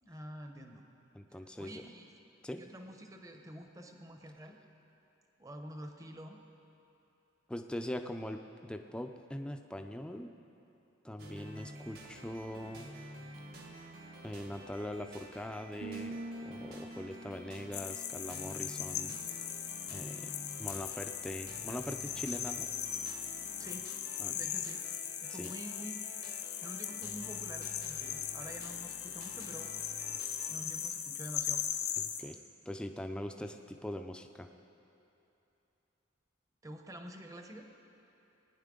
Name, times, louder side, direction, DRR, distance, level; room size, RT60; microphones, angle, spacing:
voice 1, 0.0-0.8 1.3-2.1 2.6-4.6 5.4-6.4 23.6-23.9 24.3-24.8 25.2-30.0 30.5-31.6 36.6-37.6, equal, 15° right, 4 dB, 0.7 m, -48 dB
voice 2, 1.1-1.8 2.4-2.6 7.5-10.3 11.0-13.1 14.2-19.2 19.9-20.3 20.6-22.7 24.2-24.4 25.3-25.5 32.0-32.4 32.7-34.5, left 1 dB, 5° left, 5 dB, 0.4 m, -42 dB
sound 1, 11.2-30.5, right 1 dB, 50° right, 1.3 m, -51 dB
sound 2, 15.8-19.5, right 2 dB, 80° right, 1.2 m, -47 dB
sound 3, 17.7-32.2, left 10 dB, 55° left, 0.7 m, -39 dB
19.5 x 10.0 x 3.8 m, 2.9 s
head